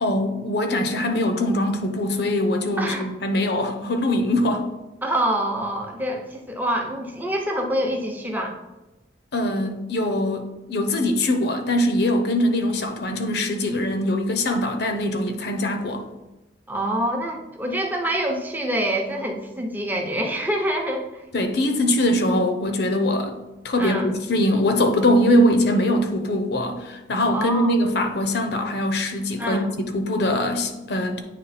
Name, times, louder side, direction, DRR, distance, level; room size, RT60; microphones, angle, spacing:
voice 1, 0.0-4.7 9.3-16.0 21.3-23.4 23.6-31.2, left 1 dB, 60° left, 6 dB, 0.7 m, -22 dB
voice 2, 5.0-8.6 16.7-21.2 23.8-24.1 27.3-27.8 29.4-29.7, right 1 dB, 10° right, 1 dB, 0.8 m, -26 dB
9.1 x 3.1 x 4.2 m, 1.0 s
head